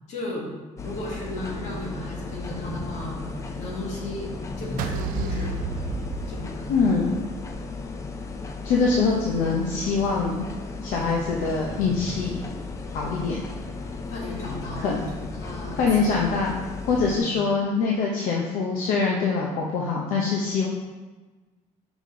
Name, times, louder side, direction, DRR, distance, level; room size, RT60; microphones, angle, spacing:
voice 1, 0.1-0.5 0.8-3.2 3.5-4.3 4.6-5.7 6.3-6.7 14.1-16.3 17.0-17.3, left 1 dB, 60° left, -2 dB, 1.6 m, -35 dB
sound 1, 0.8-17.2, left 3 dB, 20° left, 0.4 m, -35 dB
sound 2, 4.8-7.1, right 5 dB, 90° right, 0.4 m, -31 dB
voice 2, 6.7-7.2 8.6-10.5 10.8-12.4 12.9-13.5 14.8-15.1 15.7-16.5 16.9-20.7, left 4 dB, 75° left, -2 dB, 0.8 m, -24 dB
5.4 x 5.1 x 3.7 m, 1.3 s
cardioid pair, 160°, 14 cm